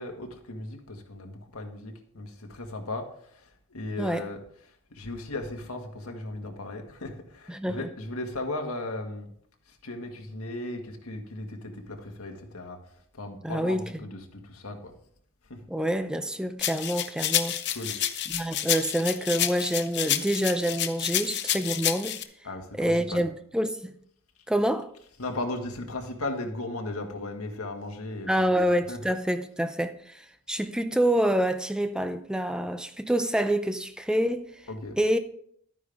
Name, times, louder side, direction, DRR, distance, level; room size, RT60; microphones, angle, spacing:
voice 1, 0.0-3.1 3.7-4.4 4.9-9.3 9.8-12.8 13.1-14.9 15.5-15.6 17.7-18.0 22.4-23.2 25.2-29.0 34.7-35.0, left 2 dB, 90° left, 1.8 m, -36 dB
voice 2, 7.5-7.9 13.4-13.9 15.7-17.6 18.3-22.2 22.8-23.9 24.5-24.9 28.3-34.5 35.0-35.2, right 1 dB, 5° right, 0.5 m, -27 dB
sound 1, 16.6-22.2, left 11 dB, 55° left, 0.8 m, -29 dB
12.0 x 9.4 x 3.6 m
head